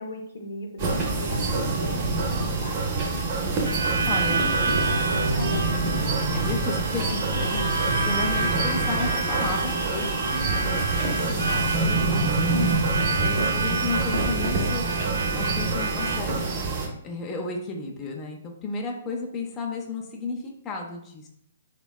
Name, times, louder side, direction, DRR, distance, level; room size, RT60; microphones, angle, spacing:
voice 1, 0.0-2.8 5.2-6.1 11.1-12.1 12.5-13.1, left 1 dB, 80° left, 3 dB, 0.5 m, -36 dB
sound 1, 0.8-16.9, right 3 dB, 40° right, 0.6 m, -26 dB
Harmonica, 3.6-16.2, right 3 dB, 90° right, 0.4 m, -29 dB
voice 2, 4.1-5.0 5.3-5.5 6.3-10.1 10.3-12.3 13.2-14.8 15.3-16.5 17.0-21.3, left 3 dB, 20° left, 0 dB, 0.4 m, -33 dB
3.3 x 2.1 x 2.2 m, 0.71 s
hypercardioid pair, 145°, 0 cm